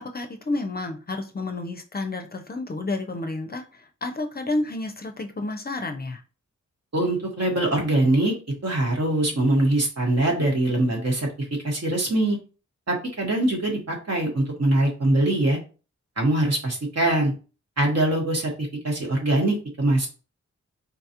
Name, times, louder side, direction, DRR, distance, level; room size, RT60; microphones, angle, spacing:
voice 1, 0.0-3.6 4.0-6.2, left 2 dB, 30° left, 5 dB, 0.5 m, -30 dB
voice 2, 6.9-8.3 8.6-11.3 11.6-12.4 12.9-15.6 16.2-17.3 17.8-18.5 18.8-20.1, right 1 dB, 60° right, 1 dB, 1.2 m, -22 dB
4.0 x 2.3 x 2.8 m, 0.35 s
wide cardioid pair, 70°, 30 cm